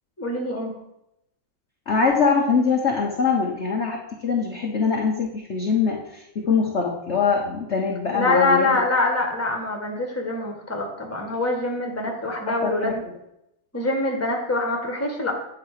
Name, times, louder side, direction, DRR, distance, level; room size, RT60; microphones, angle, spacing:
voice 1, 0.2-0.7 8.1-13.0 13.7-15.3, left 2 dB, 10° left, 2 dB, 1.4 m, -24 dB
voice 2, 1.9-8.8 12.5-12.9, left 5 dB, 45° left, 0 dB, 1.1 m, -23 dB
9.2 x 4.9 x 6.6 m, 0.83 s
omnidirectional pair, 2.1 m